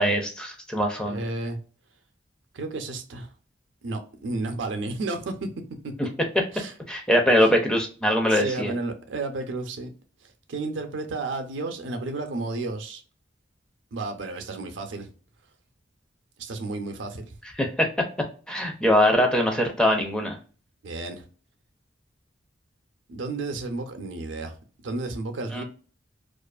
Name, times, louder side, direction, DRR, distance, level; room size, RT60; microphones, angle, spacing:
voice 1, 0.0-1.2 6.0-6.1 6.9-8.7 17.6-17.9 18.5-20.4 25.5-25.6, equal, 5° left, 0.4 m, -22 dB
voice 2, 1.1-1.6 2.5-3.3 3.8-5.5 6.5-6.7 7.4-7.5 8.3-9.9 10.2-13.0 13.9-15.1 16.4-17.3 20.8-21.2 23.1-25.6, right 2 dB, 75° right, 0.5 m, -32 dB
2.4 x 2.4 x 2.3 m
head